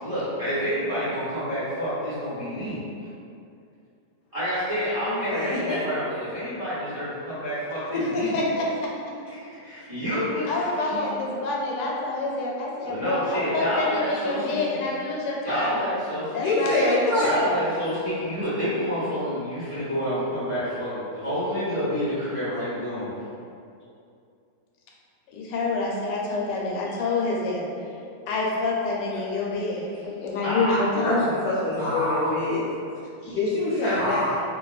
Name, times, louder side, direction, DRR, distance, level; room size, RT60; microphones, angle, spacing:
voice 1, 0.0-2.8 4.3-8.4 9.3-11.0 12.8-14.8 15.4-16.5 17.2-23.1 30.4-30.8 31.7-32.3 33.8-34.4, equal, 25° right, -14 dB, 0.8 m, -28 dB
voice 2, 5.1-5.8 16.4-17.3 30.9-32.6 33.2-34.2, left 2 dB, 65° left, -8 dB, 0.9 m, -25 dB
voice 3, 7.9-8.9 10.5-15.9 16.3-17.5 25.3-27.7 28.3-31.2, left 3 dB, 85° left, -3 dB, 1.2 m, -27 dB
2.7 x 2.6 x 2.3 m, 2.5 s
omnidirectional pair, 1.9 m